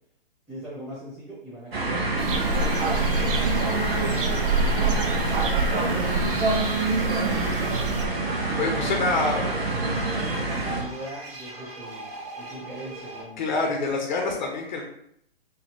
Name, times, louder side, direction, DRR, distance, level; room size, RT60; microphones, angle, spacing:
voice 1, 0.5-4.5 4.8-6.4 6.9-7.9 8.5-13.7, equal, 5° right, -10 dB, 1.2 m, -40 dB
sound 1, 1.7-10.8, right 2 dB, 80° right, 1.1 m, -26 dB
sound 2, 2.2-8.0, right 3 dB, 60° right, 0.6 m, -27 dB
sound 3, 2.5-13.2, right 2 dB, 40° right, 1.3 m, -40 dB
voice 2, 8.6-9.4 13.4-14.8, left 3 dB, 50° left, 2 dB, 0.7 m, -26 dB
4.0 x 2.8 x 3.0 m, 0.73 s
hypercardioid pair, 130°, 30 cm